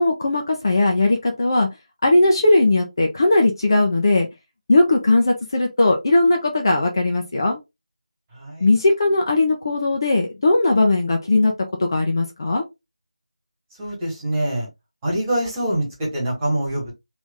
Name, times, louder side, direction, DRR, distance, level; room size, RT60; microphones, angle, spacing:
voice 1, 0.0-1.7 2.0-4.3 4.7-7.6 8.6-11.5 11.8-12.6, left 2 dB, 35° left, 2 dB, 0.8 m, -18 dB
voice 2, 8.3-8.6 13.8-14.7 15.0-16.9, right 1 dB, 10° right, -5 dB, 1.7 m, -24 dB
3.3 x 3.0 x 3.6 m, 0.22 s
figure-of-eight pair, 165°, 4 cm